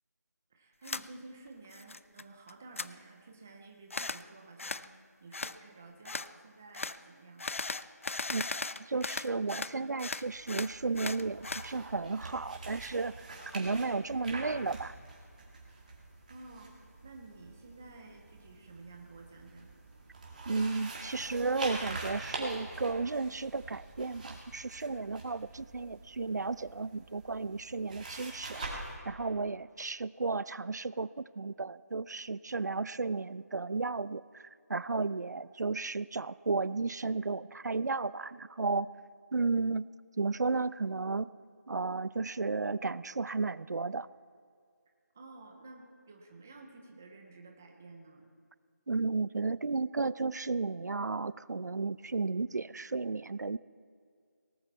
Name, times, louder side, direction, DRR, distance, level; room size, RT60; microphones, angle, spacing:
voice 1, 0.5-7.5 16.3-19.7 45.1-48.3, right 3 dB, 10° right, 2 dB, 0.5 m, -52 dB
sound 1, 0.8-1.0 1.5-2.2 2.5-2.9 3.9-4.2 4.6-4.9 5.3-5.6 6.0-6.3 6.7-7.0 7.4-9.7 10.0-11.7, left 3 dB, 50° left, 0.4 m, -37 dB
voice 2, 8.8-14.9 20.5-38.9 39.3-39.9 40.2-41.3 41.7-44.1 48.9-53.6, right 3 dB, 80° right, 18 dB, 0.5 m, -33 dB
sound 2, 10.2-29.0, right 2 dB, 30° right, 2.2 m, -45 dB
18.5 x 13.0 x 4.5 m, 2.2 s
figure-of-eight pair, 175°, 9 cm